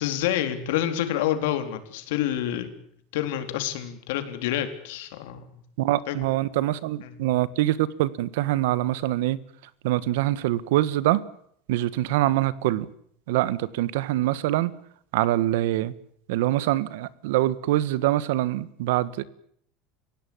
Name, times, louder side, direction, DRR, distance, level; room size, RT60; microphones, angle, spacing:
voice 1, 0.0-2.7 3.1-5.5 6.1-6.2 7.0-7.1, left 11 dB, 80° left, 8 dB, 3.7 m, -28 dB
voice 2, 5.8-9.4 9.8-11.2 11.7-12.9 13.3-14.7 15.1-15.9 16.3-19.2, right 15 dB, 80° right, 18 dB, 1.5 m, -24 dB
29.5 x 16.5 x 8.8 m, 0.66 s
cardioid pair, 175°, 0 cm